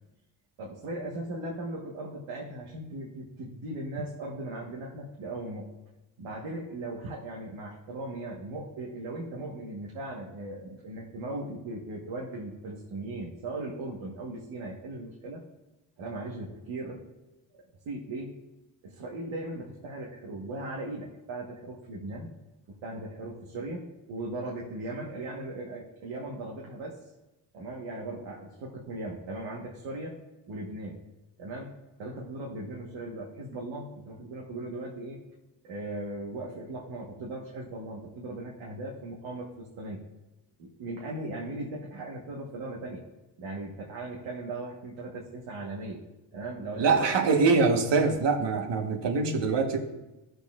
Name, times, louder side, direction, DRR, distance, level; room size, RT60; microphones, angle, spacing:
voice 1, 0.6-5.7 6.2-15.4 16.0-17.0 17.8-18.3 18.8-22.3 22.7-23.8 24.1-27.0 27.5-30.1 30.5-31.0 31.4-31.7 32.0-35.2 35.6-40.0 40.6-43.0 43.4-46.0 46.3-47.2, right 2 dB, 85° right, -3 dB, 1.5 m, -38 dB
voice 2, 46.8-49.8, right 4 dB, 60° right, 5 dB, 1.4 m, -24 dB
14.5 x 6.6 x 2.5 m, 1.0 s
cardioid pair, 80°, 47 cm